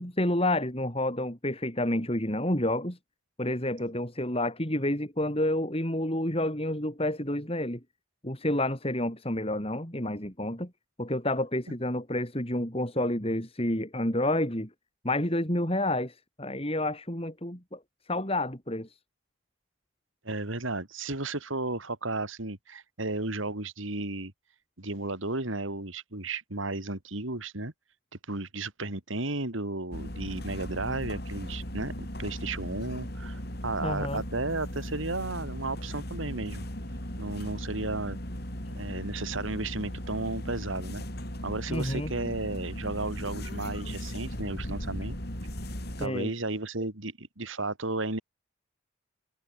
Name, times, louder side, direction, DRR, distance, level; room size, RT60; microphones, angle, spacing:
voice 1, 0.0-3.0 3.4-7.8 8.2-10.7 11.0-14.7 15.0-17.8 18.1-19.0 33.8-34.2 41.7-42.1 46.0-46.3, left 1 dB, 30° left, 4.7 m, -29 dB
voice 2, 20.2-24.3 24.8-27.7 28.3-36.6 37.2-38.2 38.7-41.0 41.4-45.2 46.0-48.2, right 2 dB, 75° right, 3.3 m, -34 dB
sound 1, 29.9-46.1, equal, 50° left, 6.0 m, -37 dB
head